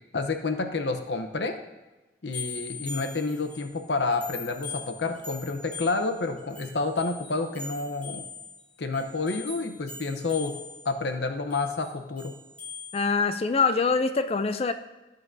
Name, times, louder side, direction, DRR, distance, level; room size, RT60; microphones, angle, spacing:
voice 1, 0.1-1.6 2.2-8.3 8.8-10.5 10.8-12.3, left 3 dB, 85° left, 7 dB, 0.8 m, -29 dB
sound 1, 2.3-3.7 4.1-10.9 11.5-13.0, left 4 dB, 10° left, 3.5 m, -42 dB
voice 2, 12.9-14.7, left 4 dB, 35° left, 10 dB, 0.4 m, -24 dB
18.0 x 6.7 x 2.7 m, 1.1 s
head